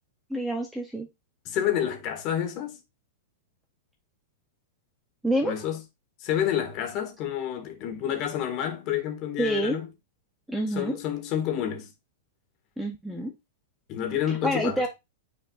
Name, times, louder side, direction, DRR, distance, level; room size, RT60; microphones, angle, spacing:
voice 1, 0.3-1.1 5.2-5.5 9.4-9.8 10.5-11.0 12.8-13.3 14.3-14.9, right 1 dB, ahead, 0.5 m, -27 dB
voice 2, 1.4-2.8 5.4-5.8 6.2-9.9 10.7-11.9 13.9-14.8, left 10 dB, 30° left, 1.5 m, -29 dB
9.0 x 4.6 x 2.4 m
supercardioid pair, 175°, 0 cm